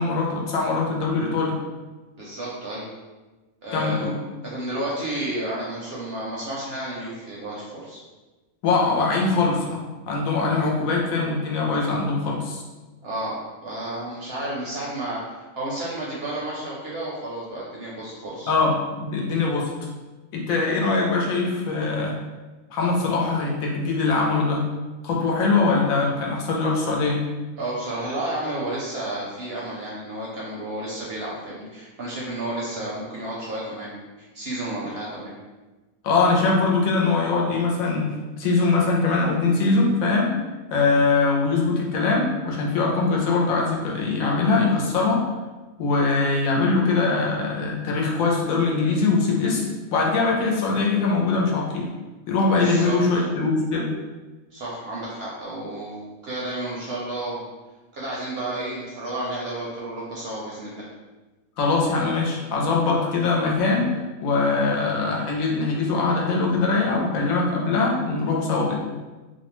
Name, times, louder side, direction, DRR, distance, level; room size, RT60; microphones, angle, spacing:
voice 1, 0.0-1.6 3.7-4.2 8.6-12.6 18.5-19.7 20.3-22.2 22.7-24.7 25.0-27.2 36.0-38.1 38.4-40.4 40.7-45.2 45.8-49.6 49.9-51.9 52.3-53.9 61.6-63.9 64.2-68.7, left 3 dB, 80° left, -1 dB, 1.0 m, -22 dB
voice 2, 2.2-2.9 3.6-4.1 4.4-8.0 13.0-18.5 27.6-35.3 52.5-53.2 54.5-57.4 57.9-60.9, right 1 dB, 60° right, -5 dB, 0.6 m, -31 dB
2.6 x 2.1 x 2.9 m, 1.2 s
omnidirectional pair, 1.4 m